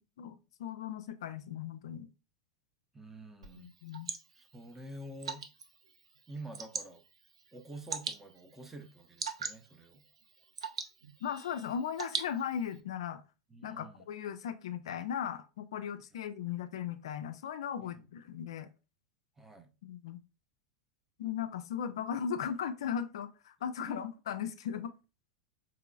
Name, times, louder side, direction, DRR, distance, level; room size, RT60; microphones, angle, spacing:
voice 1, 0.2-2.1 3.6-4.1 11.2-13.2 13.6-18.7 19.8-20.2 21.2-24.9, left 8 dB, 65° left, 0.3 m, -37 dB
voice 2, 2.9-3.7 4.3-5.4 6.3-7.0 7.5-10.0 13.5-14.1 17.8-18.0 19.4-19.7 23.8-24.1, right 1 dB, 10° right, 0.6 m, -48 dB
Water / Drip, 3.4-12.8, right 5 dB, 75° right, 0.5 m, -43 dB
3.8 x 2.9 x 2.3 m
figure-of-eight pair, 90°, 3 cm